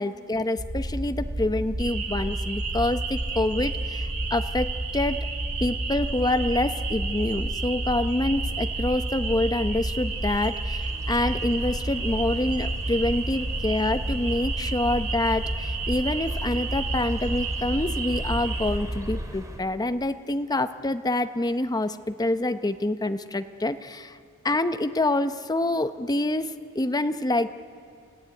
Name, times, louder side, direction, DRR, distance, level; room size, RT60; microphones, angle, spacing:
voice 1, 0.0-5.3 5.6-24.2 24.4-27.5, left 1 dB, 20° left, 9 dB, 0.8 m, -26 dB
sound 1, 0.6-19.3, right 1 dB, 40° right, 2.7 m, -31 dB
sound 2, 1.8-18.8, right 6 dB, 70° right, 2.7 m, -34 dB
sound 3, 7.8-19.6, equal, 15° right, 2.3 m, -44 dB
28.0 x 15.5 x 9.9 m, 2.2 s
head